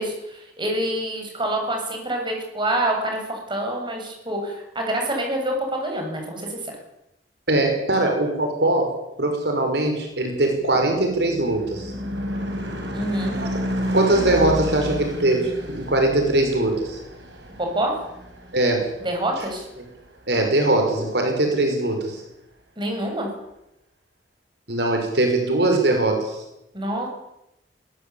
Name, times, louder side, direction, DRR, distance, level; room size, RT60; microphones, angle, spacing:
voice 1, 0.0-6.7 12.9-13.4 17.6-17.9 19.0-19.6 22.8-23.3 26.7-27.1, right 1 dB, 25° right, 2 dB, 7.6 m, -26 dB
voice 2, 7.5-11.9 13.4-13.5 13.9-17.0 18.5-18.9 20.3-22.2 24.7-26.4, right 2 dB, 70° right, 3 dB, 5.5 m, -21 dB
Car passing by / Truck / Engine, 10.6-19.3, equal, 85° right, 6.7 m, -31 dB
22.0 x 20.0 x 8.7 m, 0.88 s
head